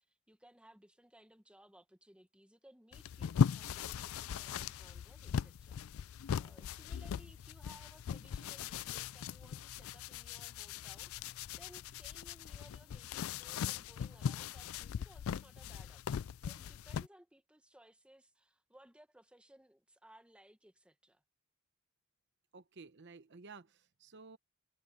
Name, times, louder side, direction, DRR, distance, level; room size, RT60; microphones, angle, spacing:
voice 1, 0.0-5.8 6.3-21.2, right 1 dB, 5° right, 1.0 m, -62 dB
sound 1, 2.9-17.1, left 7 dB, 70° left, 0.3 m, -39 dB
voice 2, 22.5-24.4, right 4 dB, 55° right, 0.9 m, -54 dB
head